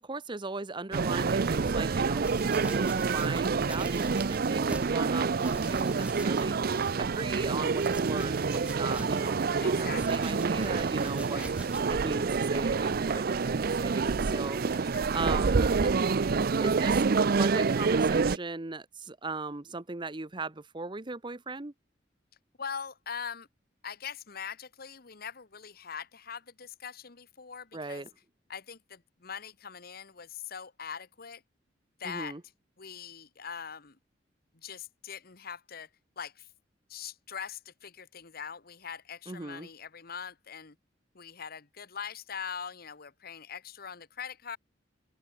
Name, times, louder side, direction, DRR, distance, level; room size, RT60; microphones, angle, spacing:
voice 1, 0.0-11.4 11.9-15.9 16.3-21.7 27.7-28.1 32.0-32.4 39.3-39.7, right 3 dB, 25° right, 0.9 m, -38 dB
sound 1, 0.9-18.4, right 4 dB, 55° right, 0.5 m, -27 dB
sound 2, 2.2-5.0 5.3-7.2 7.5-9.5 9.9-12.1 12.7-12.8, right 1 dB, 5° right, 1.1 m, -46 dB
voice 2, 5.4-5.7 9.6-10.3 11.3-11.5 14.9-15.0 22.6-23.5 23.8-28.0 28.5-31.4 32.0-32.4 32.8-34.0 34.5-35.9 36.2-36.5 36.9-40.8 41.1-44.6, left 7 dB, 55° left, 1.3 m, -42 dB
open air
head